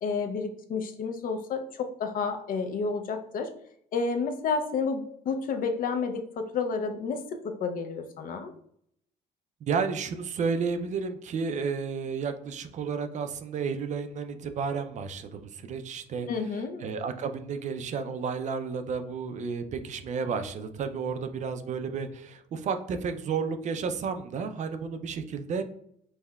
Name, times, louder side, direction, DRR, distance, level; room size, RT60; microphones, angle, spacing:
voice 1, 0.0-3.5 3.9-8.5 16.3-16.8, left 5 dB, 55° left, 6 dB, 0.5 m, -30 dB
voice 2, 9.6-16.3 16.8-25.6, right 5 dB, 45° right, 8 dB, 0.4 m, -32 dB
5.4 x 2.1 x 2.3 m, 0.70 s
cardioid pair, 110°, 17 cm